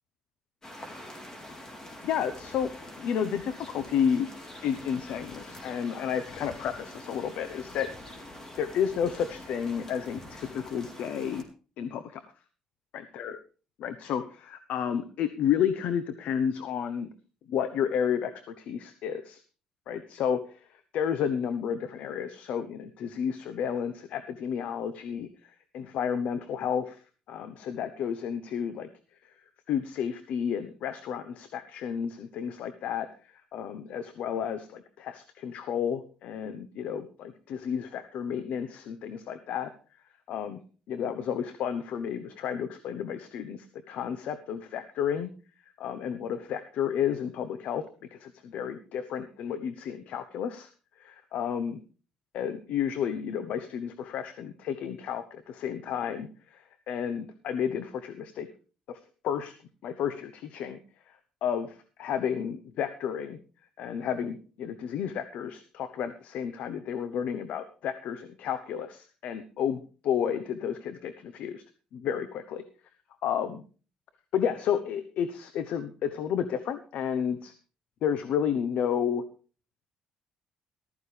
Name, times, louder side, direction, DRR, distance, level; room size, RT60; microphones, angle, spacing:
sound 1, 0.6-11.4, left 1 dB, 25° left, 3.7 m, -45 dB
voice 1, 2.0-4.3 4.6-7.9 8.6-11.4 11.8-12.2 13.1-13.4 13.8-17.1 17.5-19.4 19.9-20.6 20.9-27.0 27.3-28.9 29.7-33.1 33.5-39.7 40.3-40.6 40.9-45.3 45.8-47.8 48.1-50.7 51.0-51.8 52.3-58.5 58.9-59.0 59.2-59.5 59.8-60.8 61.4-63.4 63.8-71.6 71.9-72.6 73.2-73.6 74.3-77.5 78.0-79.2, left 8 dB, 75° left, 10 dB, 1.0 m, -31 dB
14.5 x 13.5 x 3.4 m, 0.37 s
cardioid pair, 100°, 2 cm